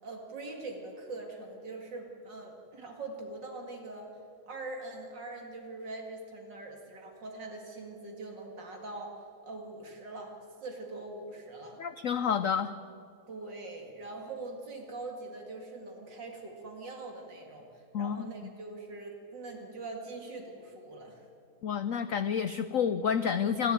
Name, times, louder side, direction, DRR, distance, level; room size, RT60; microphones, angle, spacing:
voice 1, 0.0-4.1 4.5-9.2 9.4-11.8 13.3-21.3, right 2 dB, 60° right, 2 dB, 2.8 m, -43 dB
voice 2, 11.8-12.7 17.9-18.5 21.6-23.7, left 7 dB, 90° left, 12 dB, 0.7 m, -29 dB
27.0 x 12.0 x 9.0 m, 2.4 s
omnidirectional pair, 2.2 m